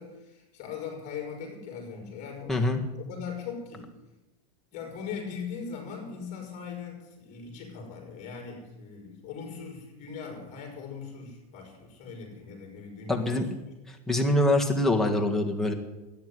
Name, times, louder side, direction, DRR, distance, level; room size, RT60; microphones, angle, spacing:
voice 1, 0.0-2.6 2.9-3.9 4.7-13.5, left 6 dB, 35° left, 0 dB, 4.7 m, -40 dB
voice 2, 2.5-2.8 13.1-13.5 14.1-15.7, left 1 dB, ahead, 0 dB, 1.7 m, -24 dB
13.0 x 9.7 x 9.8 m, 1.0 s
supercardioid pair, 145°, 21 cm